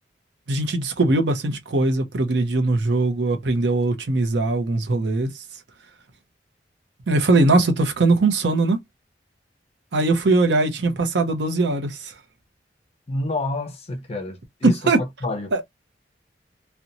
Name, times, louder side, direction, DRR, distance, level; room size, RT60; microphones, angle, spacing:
voice 1, 0.5-5.4 7.1-8.8 9.9-12.1 14.6-15.0 15.5-15.6, right 2 dB, 80° right, 0.6 m, -20 dB
voice 2, 13.1-14.8 15.2-15.5, left 2 dB, 35° left, 0.6 m, -28 dB
2.8 x 2.1 x 2.5 m
head